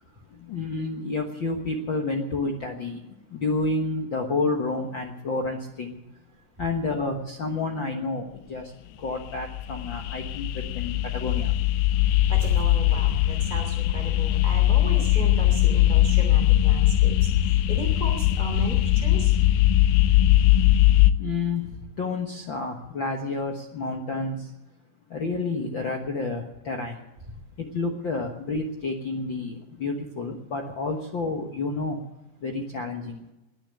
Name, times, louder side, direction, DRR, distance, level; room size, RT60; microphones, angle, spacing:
voice 1, 0.5-3.0 3.3-5.9 6.6-8.6 9.0-10.5 10.7-11.5 21.2-21.7 22.0-24.4 25.1-26.9 27.7-32.0 32.4-33.2, left 3 dB, 50° left, 2 dB, 1.4 m, -29 dB
sound 1, 9.1-21.1, left 13 dB, 85° left, 2.4 m, -20 dB
voice 2, 12.3-19.4, right 2 dB, 15° right, 1 dB, 2.6 m, -35 dB
20.5 x 7.1 x 9.6 m, 1.0 s
omnidirectional pair, 3.8 m